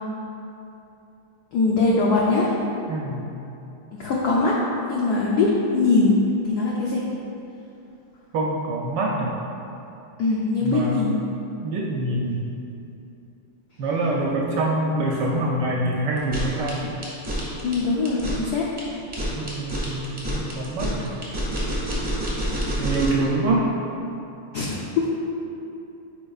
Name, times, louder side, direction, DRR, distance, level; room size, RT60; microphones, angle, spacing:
voice 1, 1.5-2.5 4.0-4.6 4.9-6.2 6.5-7.0 10.2-11.1 17.6-18.7 24.5-25.1, left 3 dB, 80° left, -4 dB, 0.8 m, -21 dB
voice 2, 2.9-3.2 8.3-9.3 10.6-11.1 11.6-12.4 13.8-16.9 19.4-21.1 22.8-23.7, right 2 dB, 70° right, -3 dB, 1.1 m, -25 dB
sound 1, 16.2-23.3, equal, 15° right, 0.9 m, -28 dB
8.7 x 4.8 x 2.4 m, 2.8 s
omnidirectional pair, 2.4 m